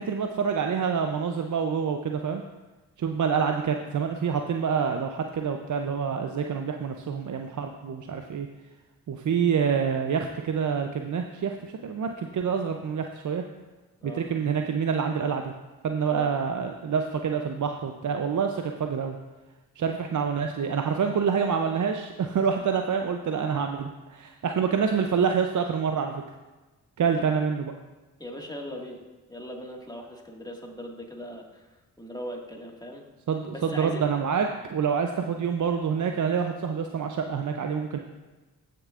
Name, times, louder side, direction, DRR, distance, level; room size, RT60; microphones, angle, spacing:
voice 1, 0.0-2.4 3.0-8.5 9.1-13.4 14.0-15.5 15.8-19.2 19.8-26.2 27.0-27.7 33.3-38.0, right 6 dB, 50° right, 4 dB, 0.6 m, -27 dB
voice 2, 28.2-29.0 29.3-31.7 32.0-33.0 33.5-34.0, equal, 10° left, 0 dB, 1.8 m, -39 dB
15.0 x 6.7 x 2.5 m, 1.2 s
supercardioid pair, 45°, 40 cm